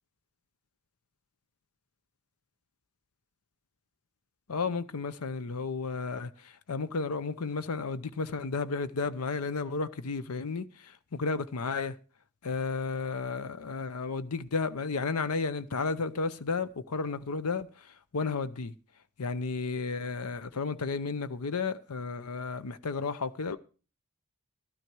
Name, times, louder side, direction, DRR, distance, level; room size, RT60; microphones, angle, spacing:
voice 1, 4.5-12.0 12.4-18.7 19.2-23.6, left 4 dB, 90° left, 0.8 m, -33 dB
13.0 x 12.5 x 4.7 m
head